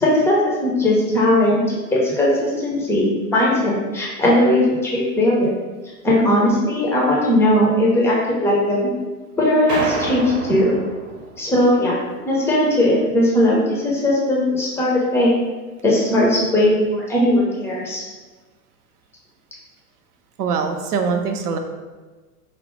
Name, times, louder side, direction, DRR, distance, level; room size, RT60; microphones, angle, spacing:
voice 1, 0.0-1.6 1.9-5.5 6.0-8.9 9.4-10.7 11.4-12.0 12.2-15.3 15.8-18.0, left 1 dB, 5° left, -4 dB, 0.4 m, -18 dB
sound 1, 9.7-11.7, right 2 dB, 40° right, 0.8 m, -28 dB
voice 2, 20.4-21.6, right 5 dB, 75° right, 5 dB, 0.6 m, -22 dB
4.3 x 2.0 x 3.0 m, 1.3 s
hypercardioid pair, 95°, 46 cm